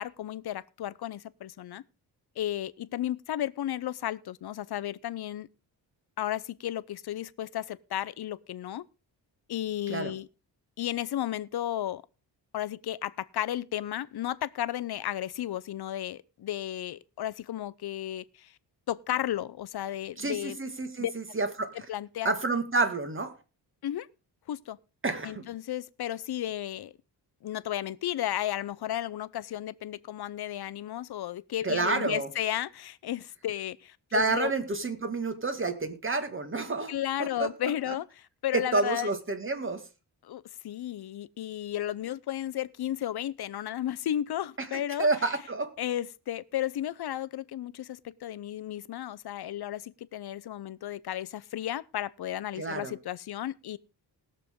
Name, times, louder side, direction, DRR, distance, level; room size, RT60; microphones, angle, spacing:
voice 1, 0.0-1.8 2.4-5.5 6.2-8.8 9.5-10.3 10.8-12.0 12.5-18.5 18.9-20.6 21.0-21.1 21.9-22.3 23.8-24.1 24.5-24.8 25.2-26.9 27.4-34.5 36.9-38.0 38.4-39.1 40.2-45.1 45.8-53.8, left 12 dB, 65° left, 0.7 m, -33 dB
voice 2, 20.2-21.7 22.2-23.3 25.0-25.4 31.6-32.3 34.1-36.9 37.2-37.9 38.5-39.8 44.6-45.7 52.5-52.9, right 3 dB, 30° right, 1.8 m, -29 dB
20.0 x 6.8 x 3.7 m
wide cardioid pair, 105°, 42 cm